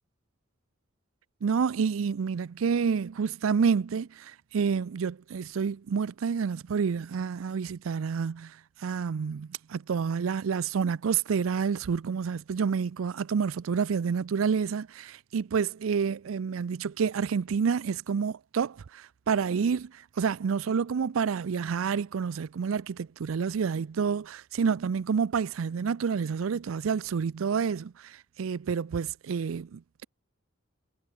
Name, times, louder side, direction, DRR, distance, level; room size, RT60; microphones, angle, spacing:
voice 1, 1.4-30.1, right 6 dB, 85° right, 0.4 m, -29 dB
head